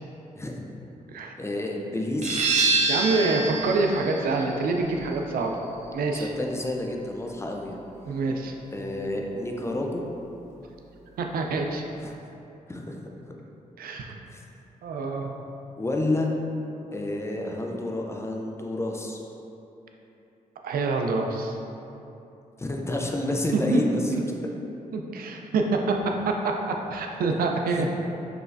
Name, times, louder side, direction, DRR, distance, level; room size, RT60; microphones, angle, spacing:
voice 1, 1.4-2.5 6.2-7.8 8.7-10.0 12.0-12.1 12.7-13.0 13.3-13.4 14.3-14.4 15.8-16.3 16.9-19.2 22.6-24.3 27.7-27.8, left 1 dB, 20° left, 1 dB, 0.4 m, -29 dB
sound 1, 2.2-7.6, right 3 dB, 50° right, 0.6 m, -28 dB
voice 2, 2.9-5.6 5.9-6.3 8.1-8.5 11.2-11.8 13.8-14.1 14.8-15.3 20.6-21.6 23.5-23.8 24.1-24.2 24.9-27.9, right 3 dB, 85° right, 2 dB, 0.4 m, -26 dB
4.8 x 3.1 x 2.5 m, 2.9 s
cardioid pair, 90°, 15 cm